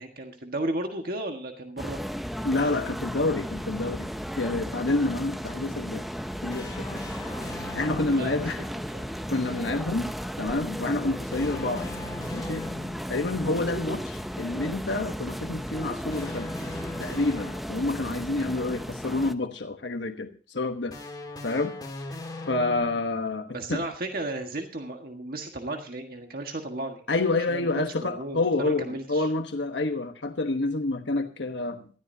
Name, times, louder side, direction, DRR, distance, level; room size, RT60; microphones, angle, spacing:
voice 1, 0.0-2.0 7.9-8.5 8.9-9.1 23.5-27.0 27.5-29.3, right 2 dB, 55° right, 4 dB, 1.6 m, -34 dB
sound 1, 1.8-19.3, equal, ahead, 0.6 m, -35 dB
voice 2, 2.4-4.1 4.4-6.0 6.4-7.0 7.7-8.6 9.3-10.1 10.4-11.9 12.3-12.7 13.1-16.5 17.0-21.0 21.4-21.7 22.1-22.2 22.5-23.8 27.1-31.9, left 2 dB, 75° left, 6 dB, 1.2 m, -28 dB
sound 2, 6.5-8.3 11.3-13.2 16.1-18.0 20.9-23.1, left 2 dB, 20° left, 2.9 m, -40 dB
19.0 x 13.5 x 2.8 m, 0.42 s
head